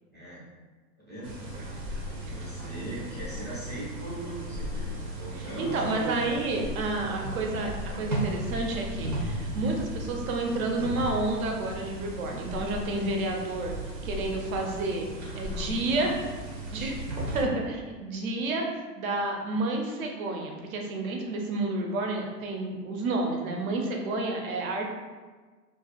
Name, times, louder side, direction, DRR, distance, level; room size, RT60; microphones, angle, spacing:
voice 1, 0.1-0.4 1.0-1.3 2.1-6.6 7.0-7.2 15.2-16.1, right 1 dB, 15° right, -13 dB, 0.3 m, -39 dB
sound 1, 1.2-17.4, right 1 dB, 85° right, 0.8 m, -36 dB
voice 2, 5.3-13.7 14.0-16.1 16.7-17.0 17.3-18.6 19.0-24.9, right 2 dB, 55° right, 1 dB, 0.6 m, -30 dB
2.5 x 2.3 x 2.3 m, 1.4 s
hypercardioid pair, 130°, 50 cm